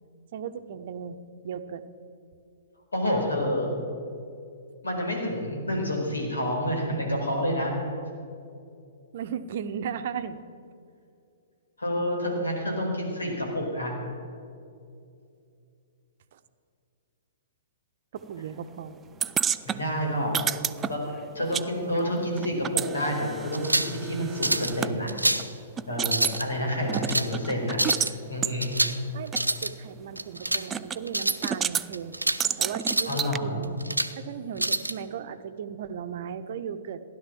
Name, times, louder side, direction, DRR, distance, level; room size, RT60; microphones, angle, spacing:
voice 1, 0.3-1.2 1.4-1.8 9.1-10.4 16.3-16.4 18.1-18.9 29.1-32.1 32.6-33.8 34.1-37.0, right 7 dB, 50° right, 10 dB, 0.9 m, -36 dB
voice 2, 2.9-3.7 4.8-7.7 11.8-13.9 19.6-20.3 20.9-21.0 21.3-25.1 25.9-27.8 28.3-28.8 33.1-33.7, equal, 75° left, 0 dB, 4.7 m, -28 dB
sound 1, 19.2-21.7 21.9-24.9 25.4-25.5 25.8-26.4 26.9-28.1 28.4-28.6 29.3-29.4 30.7-31.0 31.3-31.9 32.4-33.4, right 8 dB, 15° right, 0.4 m, -30 dB
sound 2, 23.5-24.0 24.4-24.7 25.1-25.5 26.0-26.4 26.9-27.3 27.7-28.1 28.6-29.0 29.3-29.7 30.2-30.6 31.1-31.5 31.9-32.4 32.8-33.2 33.6-34.1 34.6-34.9, right 1 dB, 90° right, 0.7 m, -27 dB
16.0 x 11.0 x 7.4 m, 2.5 s
figure-of-eight pair, 115°, 0 cm